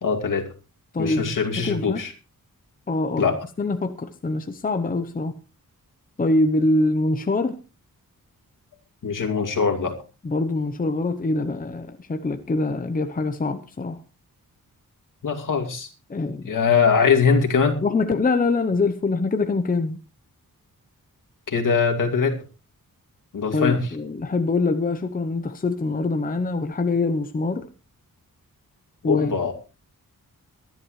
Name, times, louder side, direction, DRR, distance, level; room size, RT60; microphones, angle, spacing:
voice 1, 0.0-0.5 1.0-2.1 3.2-3.4 9.0-10.0 15.2-15.9 16.5-17.8 21.5-22.4 23.3-23.8 29.1-29.5, left 5 dB, 65° left, 2.6 m, -21 dB
voice 2, 0.9-2.0 2.9-3.3 3.6-5.4 6.2-7.6 10.2-14.0 16.1-16.5 17.8-20.0 23.5-27.7 29.0-29.3, left 3 dB, 25° left, 0.8 m, -24 dB
22.5 x 11.0 x 3.2 m
wide cardioid pair, 170°, 35 cm